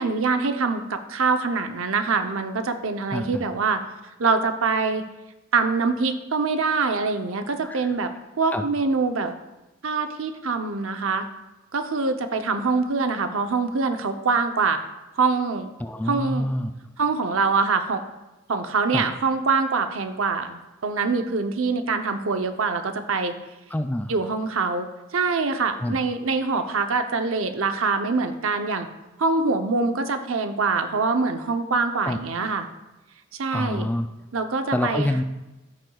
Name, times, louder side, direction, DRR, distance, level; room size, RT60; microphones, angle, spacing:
voice 1, 0.0-3.8 4.2-5.1 5.5-8.1 8.4-9.4 9.8-11.3 11.7-14.8 15.1-15.7 16.0-16.5 17.0-18.0 18.5-23.3 24.1-24.9 25.1-28.9 29.2-32.7 33.4-33.9 34.3-35.2, right 4 dB, 90° right, 7 dB, 0.8 m, -24 dB
voice 2, 3.1-3.4 7.6-7.8 8.5-8.7 15.8-16.7 18.9-19.0 23.7-24.1 25.8-26.0 32.1-32.2 33.5-34.1 34.7-35.2, left 1 dB, 10° left, 7 dB, 0.3 m, -26 dB
14.5 x 6.2 x 2.3 m, 1.0 s
head